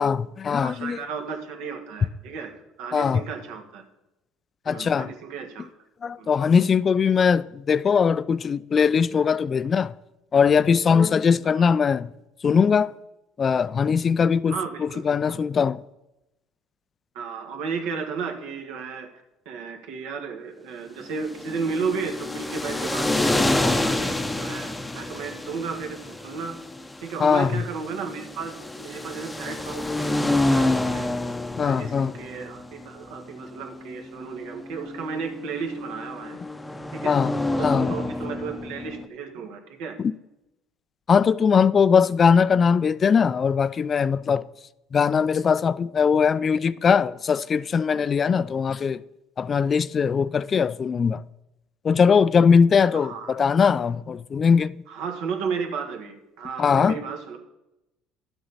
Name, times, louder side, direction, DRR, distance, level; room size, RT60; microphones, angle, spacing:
voice 1, 0.0-1.0 2.9-3.2 4.7-5.1 6.0-9.9 10.3-12.1 12.4-12.9 13.4-14.5 14.8-15.8 27.2-27.5 31.6-32.1 37.0-37.3 37.6-37.9 41.1-44.4 44.9-49.0 49.4-51.2 51.8-54.8 56.6-57.0, left 6 dB, 35° left, 0.3 m, -20 dB
voice 2, 0.6-2.5 2.8-3.8 4.6-5.7 6.2-6.3 11.4-11.7 14.5-15.4 17.1-19.1 19.4-26.6 27.0-31.1 31.6-36.4 36.9-37.1 37.6-40.0 52.9-53.4 54.9-57.4, right 5 dB, 75° right, 1.5 m, -34 dB
sound 1, 21.2-39.1, left 2 dB, 10° left, 0.7 m, -28 dB
11.5 x 7.9 x 4.1 m
supercardioid pair, 100°, 0 cm